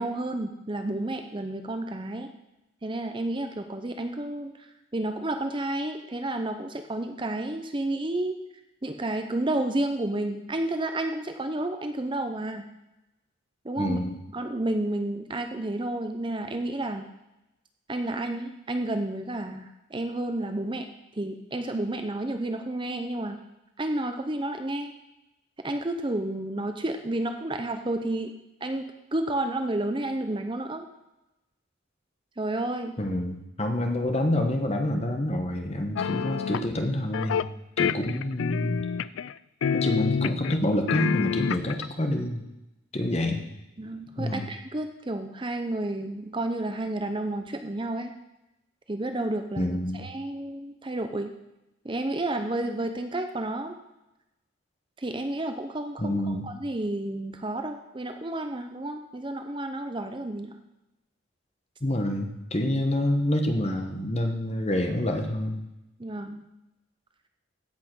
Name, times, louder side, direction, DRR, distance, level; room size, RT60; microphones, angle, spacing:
voice 1, 0.0-2.3 2.8-8.4 8.8-12.7 13.6-14.0 14.3-17.1 17.9-23.4 23.8-24.9 25.6-28.3 28.6-30.9 32.4-33.0 43.8-48.1 48.9-51.3 51.8-53.8 55.0-60.5 66.0-66.4, right 1 dB, 25° right, 6 dB, 0.6 m, -31 dB
voice 2, 13.8-14.1 33.0-37.5 37.8-38.8 39.7-42.4 42.9-43.4 44.2-44.4 49.6-50.1 56.0-56.5 61.8-65.6, left 1 dB, 30° left, 4 dB, 1.3 m, -27 dB
sound 1, 36.0-36.7 37.1-37.5 37.8-39.3 39.6-40.6 40.9-41.9, left 7 dB, 65° left, 0.3 m, -27 dB
16.0 x 5.8 x 6.2 m, 0.94 s
head